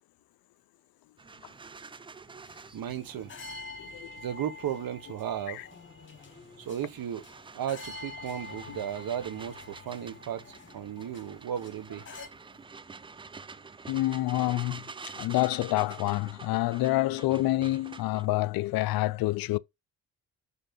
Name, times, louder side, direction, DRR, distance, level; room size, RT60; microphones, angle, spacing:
sound 1, 1.2-18.3, right 4 dB, 15° right, 0.4 m, -48 dB
sound 2, 2.3-12.3, left 3 dB, 25° left, 2.5 m, -47 dB
voice 1, 2.7-3.3 4.2-5.7 6.6-7.2 7.5-12.0, right 9 dB, 55° right, 1.5 m, -35 dB
voice 2, 3.8-4.1 5.5-5.6 13.9-14.8 15.2-19.6, left 17 dB, 55° left, 0.6 m, -27 dB
5.9 x 5.7 x 5.5 m
hypercardioid pair, 55°, 43 cm